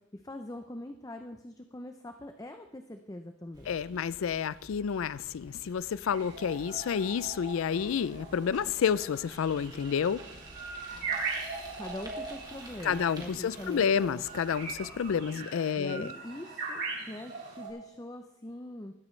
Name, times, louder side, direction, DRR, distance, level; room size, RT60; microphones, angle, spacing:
voice 1, 0.1-3.8 11.7-14.2 15.7-18.9, left 1 dB, 15° left, 0.5 m, -43 dB
Bicycle, 3.5-15.1, right 1 dB, 20° right, 2.3 m, -52 dB
voice 2, 3.7-10.2 12.8-16.1, left 7 dB, 75° left, 0.4 m, -30 dB
sound 1, 6.0-17.7, right 4 dB, 55° right, 6.0 m, -40 dB
20.5 x 11.0 x 3.2 m
head